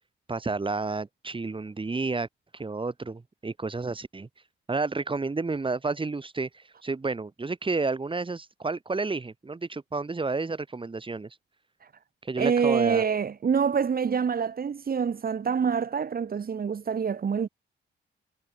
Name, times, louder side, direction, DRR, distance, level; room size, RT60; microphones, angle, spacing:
voice 1, 0.3-2.3 2.5-4.3 4.7-11.4 12.2-13.0, right 3 dB, 25° right, 6.9 m, -31 dB
voice 2, 12.4-17.5, right 6 dB, 50° right, 5.3 m, -26 dB
cardioid pair, 95°, 20 cm